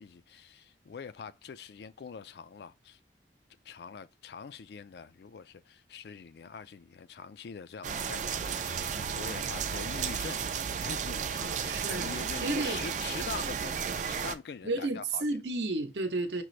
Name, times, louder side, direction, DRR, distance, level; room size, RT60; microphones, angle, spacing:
voice 1, 0.0-3.0 3.6-10.4 10.8-15.4, left 5 dB, 65° left, 0.3 m, -44 dB
sound 1, 7.8-14.4, right 6 dB, 45° right, 0.4 m, -33 dB
voice 2, 11.4-12.1 12.4-12.8 14.6-16.4, right 2 dB, 75° right, 0.8 m, -32 dB
6.1 x 2.5 x 3.1 m
head